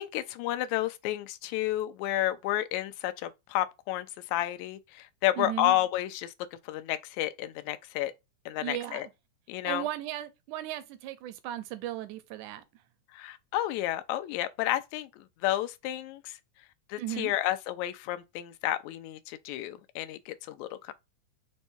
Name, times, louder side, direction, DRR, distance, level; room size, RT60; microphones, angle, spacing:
voice 1, 0.0-8.1 8.5-9.1 9.5-9.9 13.1-16.4 16.9-20.9, left 14 dB, 80° left, 1.8 m, -31 dB
voice 2, 5.4-5.8 8.6-9.1 9.6-12.6 17.0-17.3, right 13 dB, 80° right, 2.0 m, -36 dB
5.3 x 2.3 x 4.3 m
omnidirectional pair, 3.6 m